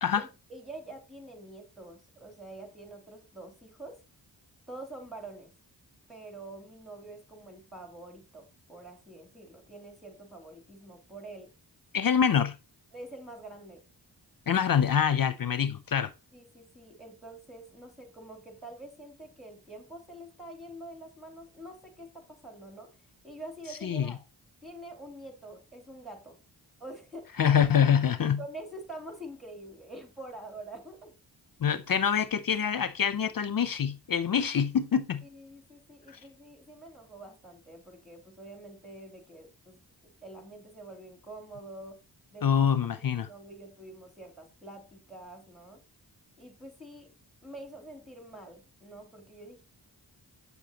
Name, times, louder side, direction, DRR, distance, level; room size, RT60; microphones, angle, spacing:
voice 1, 0.1-4.0 4.7-5.5 6.1-11.5 12.9-13.8 16.3-22.9 23.2-24.2 24.6-26.3 26.8-27.6 28.4-31.1 35.2-39.8 40.2-42.0 42.3-42.5 43.1-45.8 46.4-47.1 47.4-49.6, right 2 dB, ahead, 2.8 m, -46 dB
voice 2, 11.9-12.5 14.5-16.1 23.8-24.1 27.4-28.4 31.6-35.2 42.4-43.3, left 8 dB, 50° left, 0.6 m, -25 dB
8.2 x 6.8 x 2.8 m
cardioid pair, 45°, 45 cm